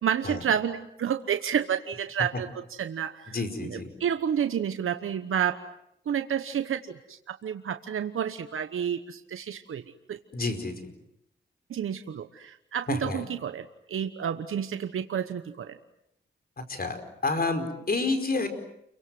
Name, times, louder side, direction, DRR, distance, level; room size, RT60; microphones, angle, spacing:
voice 1, 0.0-3.4 3.6-5.6 6.1-9.8 10.1-10.2 11.7-15.8, right 8 dB, 80° right, 8 dB, 1.1 m, -30 dB
voice 2, 3.3-3.9 10.3-10.9 12.9-13.2 16.7-18.5, left 3 dB, 45° left, 8 dB, 4.8 m, -29 dB
29.5 x 24.0 x 7.8 m, 0.79 s
cardioid pair, 70°, 21 cm